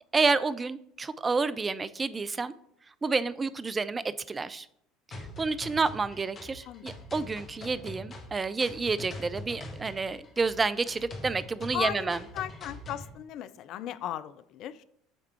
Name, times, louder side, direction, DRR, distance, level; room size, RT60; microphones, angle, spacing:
voice 1, 0.1-2.5 3.0-4.7 5.2-12.2, right 4 dB, 25° right, 0.3 m, -29 dB
sound 1, 5.1-13.1, left 2 dB, 35° left, 1.2 m, -43 dB
voice 2, 11.7-14.8, left 11 dB, 50° left, 0.3 m, -36 dB
8.0 x 3.5 x 4.4 m
figure-of-eight pair, 65°, 0 cm